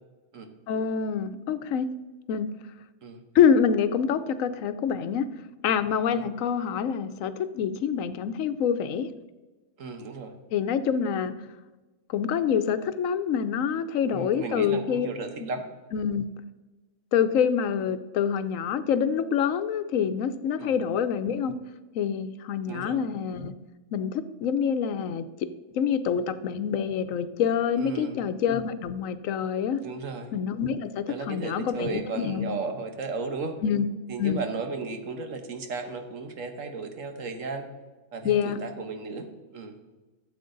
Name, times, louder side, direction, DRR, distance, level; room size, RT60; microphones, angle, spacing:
voice 1, 0.7-1.9 2.3-2.5 3.3-5.3 5.6-9.1 10.5-11.3 12.1-15.1 15.9-16.3 17.1-21.5 21.9-23.5 23.9-25.3 25.7-29.8 30.3-32.5 33.6-33.9 34.2-34.4 38.2-38.6, left 7 dB, 85° left, 12 dB, 1.1 m, -26 dB
voice 2, 9.8-10.3 14.1-15.7 20.6-20.8 22.7-23.0 27.8-28.2 29.8-30.3 31.1-33.6 34.1-37.7 38.1-39.3 39.5-39.8, right 3 dB, 80° right, 6 dB, 1.5 m, -35 dB
13.0 x 7.8 x 3.9 m, 1.2 s
omnidirectional pair, 1.3 m